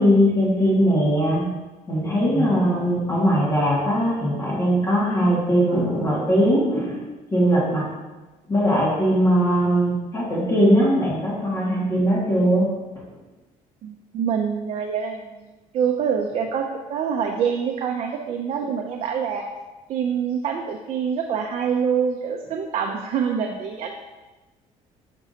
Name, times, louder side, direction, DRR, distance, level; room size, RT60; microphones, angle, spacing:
voice 1, 0.0-1.5 1.9-7.0 7.3-7.9 8.5-12.7, equal, 25° left, -7 dB, 2.0 m, -20 dB
voice 2, 13.8-19.5 19.9-23.9, right 7 dB, 50° right, 2 dB, 0.5 m, -25 dB
7.0 x 6.0 x 2.8 m, 1.2 s
cardioid pair, 155°, 13 cm